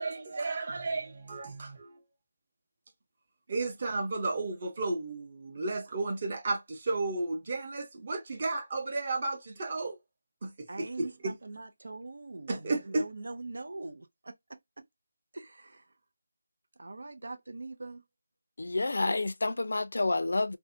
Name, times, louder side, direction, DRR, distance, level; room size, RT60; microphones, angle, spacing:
voice 1, 0.0-2.0 3.5-10.0 10.4-11.3 12.5-13.1, right 3 dB, 30° right, 0.7 m, -33 dB
voice 2, 10.7-14.8 15.3-15.9 16.8-18.0, right 2 dB, 80° right, 0.4 m, -43 dB
voice 3, 18.6-20.6, left 2 dB, 75° left, 0.5 m, -29 dB
2.6 x 2.1 x 2.6 m
figure-of-eight pair, 175°, 0 cm